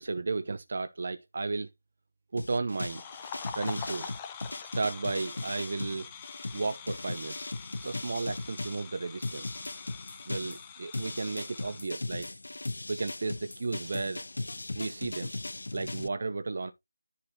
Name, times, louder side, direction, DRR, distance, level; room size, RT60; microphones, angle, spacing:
voice 1, 0.0-1.7 2.3-3.0 3.5-4.1 4.7-6.1 6.5-7.5 7.8-9.6 10.3-12.3 12.9-14.2 14.7-15.3 15.7-16.7, right 3 dB, 50° right, 0.8 m, -34 dB
sound 1, 2.4-8.8 9.2-16.1, left 2 dB, 70° left, 0.5 m, -38 dB
sound 2, 2.8-11.9, left 7 dB, 15° left, 0.8 m, -45 dB
10.5 x 4.3 x 4.1 m
figure-of-eight pair, 165°, 0 cm